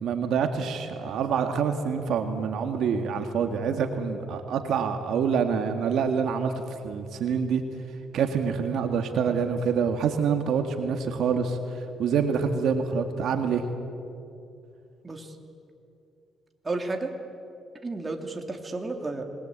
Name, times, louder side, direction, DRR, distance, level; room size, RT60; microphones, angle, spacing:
voice 1, 0.0-6.5 6.8-7.6 8.1-13.6, right 6 dB, 75° right, 6 dB, 2.0 m, -26 dB
voice 2, 16.6-17.1 17.8-19.2, right 3 dB, 25° right, 4 dB, 3.1 m, -32 dB
27.0 x 21.0 x 8.7 m, 2.7 s
cardioid pair, 90°, 0 cm